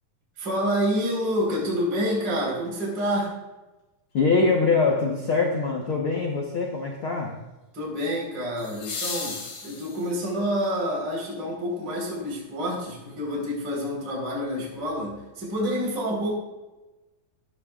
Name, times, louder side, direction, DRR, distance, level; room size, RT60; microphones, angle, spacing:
voice 1, 0.4-3.3 7.7-9.4 9.6-16.3, equal, 25° right, -3 dB, 4.8 m, -28 dB
sound 1, 2.9-3.0 8.6-10.4 12.5-12.6, left 4 dB, 50° left, 3.6 m, -35 dB
voice 2, 4.1-7.4, left 4 dB, 85° left, 0 dB, 1.1 m, -23 dB
17.0 x 13.0 x 2.5 m, 1.1 s
omnidirectional pair, 4.6 m